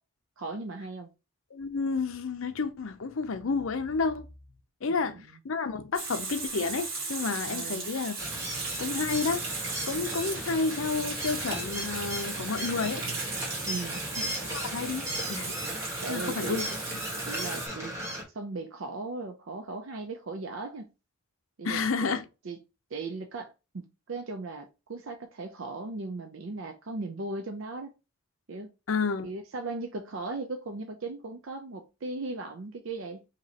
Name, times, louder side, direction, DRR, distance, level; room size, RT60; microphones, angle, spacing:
voice 1, 0.4-1.1 4.9-5.4 7.5-7.8 13.6-14.1 16.0-16.6 17.3-18.0 18.3-20.9 21.6-22.2 22.4-22.6 22.9-27.9 28.5-28.7 29.2-33.3, right 3 dB, 65° right, 0.5 m, -37 dB
voice 2, 1.5-4.3 4.8-8.1 8.8-9.4 9.9-13.1 14.5-15.6 16.1-16.7 21.6-22.3 28.9-29.3, left 4 dB, 70° left, 0.6 m, -30 dB
Water tap faucet / Sink (filling or washing), 5.9-17.7, right 3 dB, 45° right, 1.5 m, -36 dB
sound 1, 8.2-18.2, equal, 15° right, 1.2 m, -36 dB
4.9 x 2.9 x 2.8 m
head